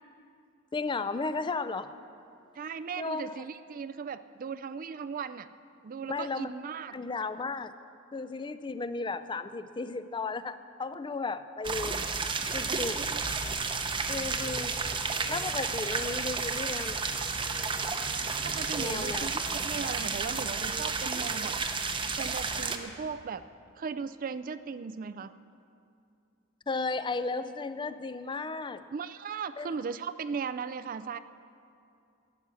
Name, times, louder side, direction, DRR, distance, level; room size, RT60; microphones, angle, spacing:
voice 1, 0.7-1.9 3.0-3.4 6.0-6.5 6.9-7.7 8.1-12.1 12.5-13.0 14.1-14.7 15.3-17.3 18.8-19.3 19.8-20.0 26.7-28.8 29.6-29.7, left 3 dB, 25° left, 12 dB, 0.4 m, -34 dB
voice 2, 2.6-5.5 5.8-7.0 12.7-13.2 13.8-14.2 18.4-21.6 22.2-23.4 23.8-25.3 28.9-31.2, right 5 dB, 45° right, 13 dB, 0.4 m, -37 dB
sound 1, 11.6-22.8, right 4 dB, 25° right, 0.7 m, -32 dB
15.0 x 9.7 x 6.9 m, 2.5 s
head